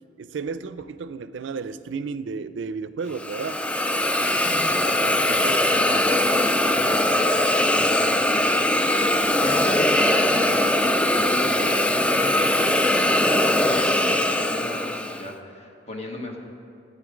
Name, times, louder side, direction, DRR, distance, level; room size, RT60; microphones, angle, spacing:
voice 1, 0.2-3.6, right 5 dB, 85° right, 13 dB, 0.4 m, -32 dB
Hiss, 3.1-15.3, left 1 dB, 5° left, 0.3 m, -21 dB
voice 2, 4.4-7.1 7.4-8.9 9.4-12.5 13.2-16.4, left 1 dB, 35° left, 2 dB, 1.3 m, -35 dB
12.5 x 8.3 x 5.1 m, 2.6 s
head